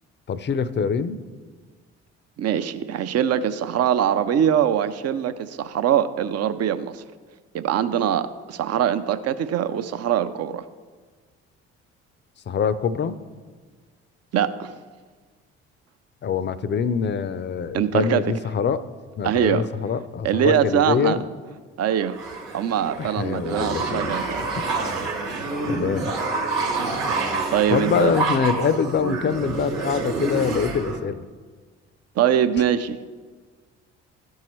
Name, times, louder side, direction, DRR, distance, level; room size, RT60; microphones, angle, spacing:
voice 1, 0.3-1.2 12.5-13.2 16.2-18.9 19.2-21.2 23.0-24.7 25.7-26.1 27.7-31.2, left 6 dB, 35° left, 15 dB, 0.5 m, -24 dB
voice 2, 2.4-7.0 7.5-10.6 14.3-14.7 17.7-18.2 19.2-19.6 20.2-21.2 21.8-22.1 22.5-24.4 27.5-28.1 32.2-33.0, right 9 dB, 50° right, 12 dB, 0.6 m, -22 dB
sound 1, 22.0-31.0, right 3 dB, 85° right, 1.3 m, -27 dB
12.0 x 4.6 x 3.1 m, 1.5 s
hypercardioid pair, 55°, 33 cm